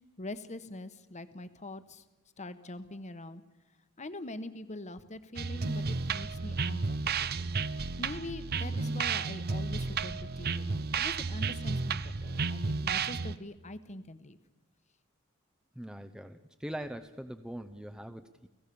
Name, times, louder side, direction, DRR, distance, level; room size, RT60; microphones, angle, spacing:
voice 1, 0.2-2.0 2.4-3.4 4.0-7.5 8.0-14.4, left 2 dB, 35° left, 12 dB, 1.1 m, -43 dB
sound 1, 5.4-13.4, right 4 dB, 50° right, 0.7 m, -32 dB
voice 2, 15.8-18.5, right 1 dB, 5° right, 7 dB, 0.7 m, -42 dB
30.0 x 17.0 x 7.0 m, 1.1 s
head